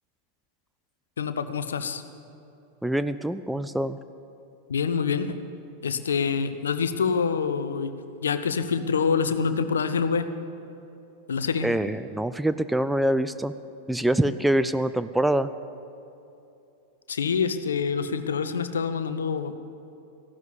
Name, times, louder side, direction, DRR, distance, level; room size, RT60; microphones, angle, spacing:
voice 1, 1.2-2.0 4.7-5.4 5.8-7.9 8.2-10.3 11.3-11.7 17.1-19.5, left 6 dB, 70° left, 11 dB, 0.8 m, -26 dB
voice 2, 2.8-4.0 11.6-13.5 13.9-15.5, right 1 dB, 5° right, 12 dB, 0.4 m, -25 dB
15.5 x 12.0 x 7.1 m, 2.8 s
figure-of-eight pair, 90°, 0 cm